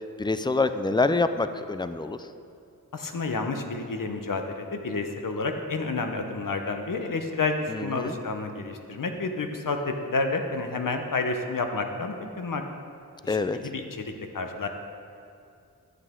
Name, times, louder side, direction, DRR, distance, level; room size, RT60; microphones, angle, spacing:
voice 1, 0.2-2.2 7.7-8.2 13.3-13.6, left 3 dB, 15° left, 11 dB, 0.4 m, -26 dB
voice 2, 2.9-12.6 13.2-14.7, left 3 dB, 60° left, 5 dB, 0.9 m, -30 dB
11.5 x 8.0 x 3.7 m, 2.5 s
wide cardioid pair, 60°, 37 cm